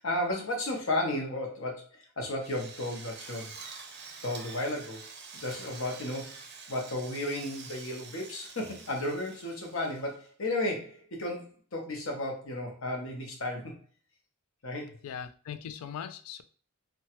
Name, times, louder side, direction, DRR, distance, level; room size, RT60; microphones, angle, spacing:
voice 1, 0.0-3.5 4.2-5.1 5.3-6.3 6.7-13.7 14.6-14.9, left 1 dB, 70° left, 1 dB, 0.8 m, -33 dB
Drill, 2.4-10.3, right 5 dB, 50° right, 0.5 m, -47 dB
voice 2, 15.0-16.4, left 8 dB, 85° left, 13 dB, 0.3 m, -40 dB
2.9 x 2.2 x 2.9 m, 0.41 s
head